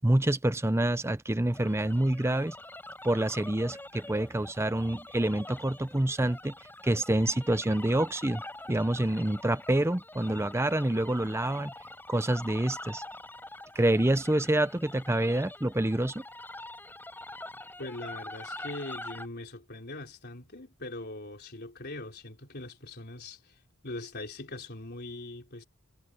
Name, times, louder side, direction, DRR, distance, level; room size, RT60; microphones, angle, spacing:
voice 1, 0.0-2.5 3.0-6.5 6.8-8.4 8.7-11.7 12.1-13.0 13.8-16.2, right 1 dB, 10° right, 0.6 m, -27 dB
sound 1, 1.5-19.3, left 1 dB, 10° left, 6.3 m, -45 dB
voice 2, 17.8-23.6 23.8-25.6, left 2 dB, 45° left, 3.9 m, -41 dB
head